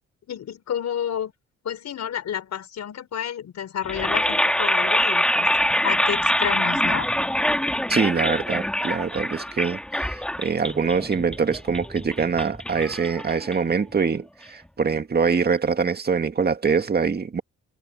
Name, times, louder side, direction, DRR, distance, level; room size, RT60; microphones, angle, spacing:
voice 1, 0.3-1.3 1.6-5.5 5.8-7.1, left 9 dB, 60° left, 5.1 m, -30 dB
sound 1, 3.8-13.9, left 1 dB, 5° left, 1.6 m, -24 dB
voice 2, 7.9-17.4, right 5 dB, 30° right, 2.0 m, -24 dB
cardioid pair, 90°, 30 cm